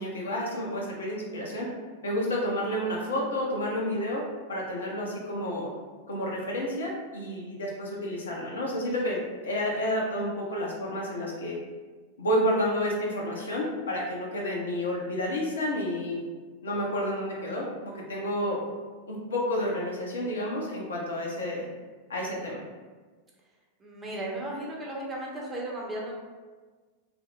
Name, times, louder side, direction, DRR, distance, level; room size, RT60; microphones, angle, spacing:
voice 1, 0.0-1.7 2.0-4.2 4.5-5.7 6.1-9.2 9.4-11.6 12.2-16.2 16.6-18.6 19.1-21.6 22.1-22.6, equal, 70° left, -4 dB, 0.6 m, -30 dB
voice 2, 23.8-26.2, right 1 dB, 20° right, -3 dB, 0.7 m, -35 dB
2.8 x 2.0 x 3.1 m, 1.4 s
figure-of-eight pair, 90°, 0 cm